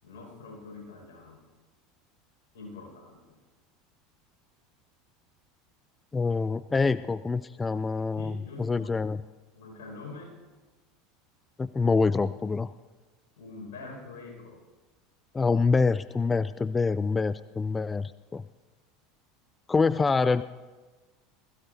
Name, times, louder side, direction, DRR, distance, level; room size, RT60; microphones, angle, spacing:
voice 1, 0.0-1.5 2.5-3.4 8.2-8.9 9.5-10.4 13.4-14.6, left 3 dB, 75° left, -1 dB, 5.5 m, -44 dB
voice 2, 6.1-8.3 8.6-9.2 11.6-12.7 15.3-18.4 19.7-20.4, left 4 dB, 20° left, 16 dB, 0.3 m, -26 dB
21.0 x 15.5 x 2.7 m, 1.3 s
hypercardioid pair, 85°, 0 cm